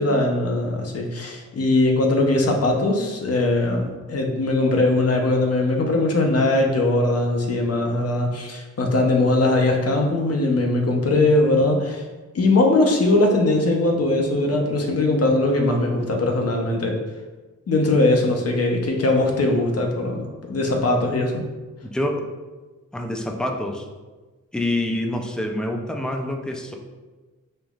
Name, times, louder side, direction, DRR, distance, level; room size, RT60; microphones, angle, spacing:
voice 1, 0.0-12.0 12.3-17.0 17.7-21.4, left 2 dB, 50° left, 1 dB, 0.7 m, -20 dB
voice 2, 21.8-22.2 22.9-23.9 24.5-26.7, left 1 dB, ahead, 2 dB, 0.3 m, -26 dB
5.3 x 3.0 x 2.4 m, 1.2 s
wide cardioid pair, 125°, 32 cm